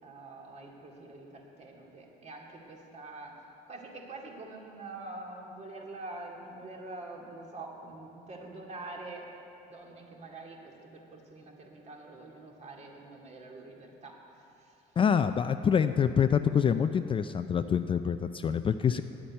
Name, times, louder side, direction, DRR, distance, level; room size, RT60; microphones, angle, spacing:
voice 1, 0.0-3.4 3.7-9.3 9.7-14.8, right 2 dB, 40° right, -1 dB, 2.4 m, -45 dB
voice 2, 15.0-19.0, left 7 dB, 30° left, 10 dB, 0.4 m, -26 dB
10.5 x 8.6 x 9.3 m, 2.8 s
cardioid pair, 110°, 17 cm